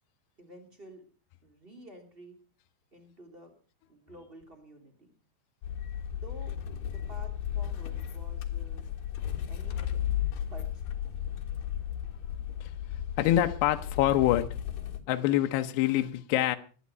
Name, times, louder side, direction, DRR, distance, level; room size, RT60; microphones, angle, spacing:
voice 1, 0.4-1.0 1.4-2.4 2.9-3.5 3.9-5.1 6.1-6.5 6.8-8.8 9.4-10.2 10.4-11.0 12.2-12.3, right 1 dB, 30° right, 0.9 m, -51 dB
sound 1, 5.6-15.0, left 10 dB, 65° left, 2.2 m, -34 dB
voice 2, 13.2-14.5 15.1-16.6, left 13 dB, 80° left, 2.4 m, -25 dB
18.5 x 11.5 x 5.6 m
omnidirectional pair, 6.0 m